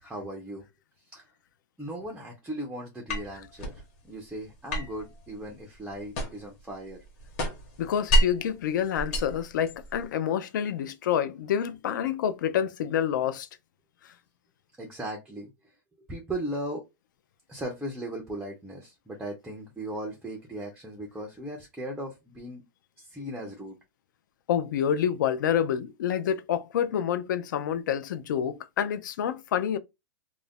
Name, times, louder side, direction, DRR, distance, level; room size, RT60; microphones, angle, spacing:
voice 1, 0.0-0.7 1.1-1.3 1.8-7.0 14.8-15.5 16.0-16.8 17.5-22.6 23.0-23.8, right 1 dB, 5° right, 0.4 m, -37 dB
sound 1, 3.1-3.8 4.7-6.6 6.9-8.5 9.0-10.0, equal, 35° left, 0.9 m, -28 dB
voice 2, 7.8-13.5 24.5-29.8, left 9 dB, 65° left, 0.4 m, -28 dB
2.4 x 2.1 x 3.4 m
supercardioid pair, 165°, 11 cm